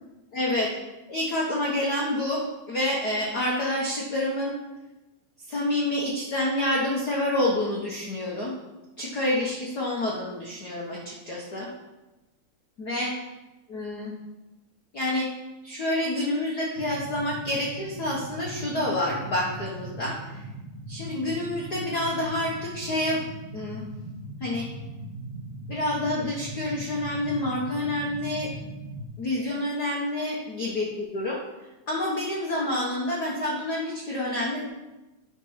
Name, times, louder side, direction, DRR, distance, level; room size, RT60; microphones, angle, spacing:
voice 1, 0.3-0.7 1.1-4.5 5.5-8.5 9.0-11.7 12.8-13.1 13.7-14.1 14.9-15.3 15.6-20.4 20.9-23.2 23.5-23.9 24.4-24.7 25.7-28.5 29.2-31.4 31.9-34.7, left 1 dB, 80° left, -3 dB, 0.8 m, -28 dB
sound 1, 16.8-29.0, right 1 dB, 90° right, 0.6 m, -39 dB
10.5 x 4.5 x 5.6 m, 1.1 s
omnidirectional pair, 3.7 m